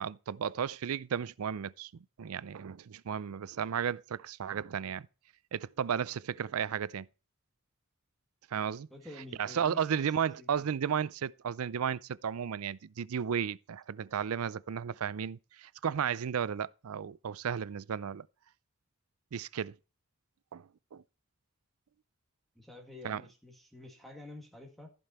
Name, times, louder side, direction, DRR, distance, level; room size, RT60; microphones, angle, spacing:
voice 1, 0.0-5.1 5.5-7.1 8.5-8.9 9.4-18.3 19.3-19.7 20.5-21.0 23.0-23.2, right 7 dB, 90° right, 0.4 m, -34 dB
voice 2, 8.9-10.7 22.6-24.9, left 2 dB, ahead, 1.9 m, -50 dB
15.0 x 5.4 x 4.3 m
head